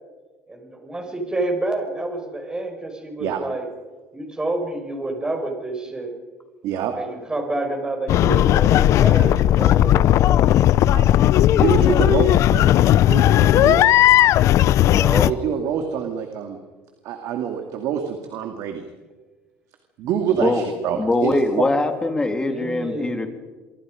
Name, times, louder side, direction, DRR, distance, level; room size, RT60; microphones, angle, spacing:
voice 1, 0.5-3.7 4.1-6.1 7.0-10.5 22.5-23.3, right 2 dB, 15° right, 4 dB, 5.7 m, -28 dB
sound 1, 8.1-15.3, left 13 dB, 55° left, 0.6 m, -16 dB
voice 2, 11.6-12.7 13.1-13.9 15.1-16.6 17.0-18.9 20.0-21.6, right 8 dB, 65° right, 5 dB, 2.5 m, -26 dB
voice 3, 14.8-15.3 20.4-20.6 21.0-23.3, left 2 dB, 15° left, 5 dB, 3.2 m, -22 dB
26.5 x 23.5 x 5.2 m, 1.3 s
cardioid pair, 110°, 6 cm